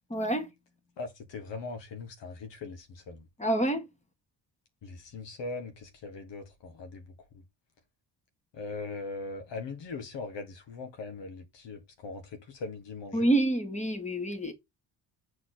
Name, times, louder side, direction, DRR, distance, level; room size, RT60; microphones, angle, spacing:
voice 1, 0.1-0.5 3.4-3.8 13.1-14.5, right 1 dB, 15° left, 1.9 m, -27 dB
voice 2, 1.0-3.3 4.8-7.4 8.5-13.3, left 3 dB, 75° left, 1.7 m, -40 dB
7.4 x 4.2 x 4.2 m
cardioid pair, 100°, 44 cm